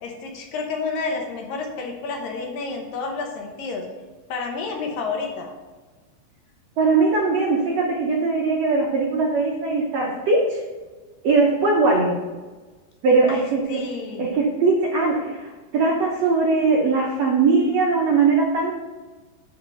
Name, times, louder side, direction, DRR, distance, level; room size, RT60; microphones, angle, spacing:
voice 1, 0.0-3.9 4.3-5.5 13.3-14.3, left 4 dB, 70° left, 2 dB, 2.5 m, -30 dB
voice 2, 6.8-10.6 11.2-12.1 13.0-13.8 14.2-18.7, right 3 dB, 85° right, -2 dB, 1.4 m, -20 dB
9.3 x 4.1 x 6.6 m, 1.3 s
omnidirectional pair, 4.6 m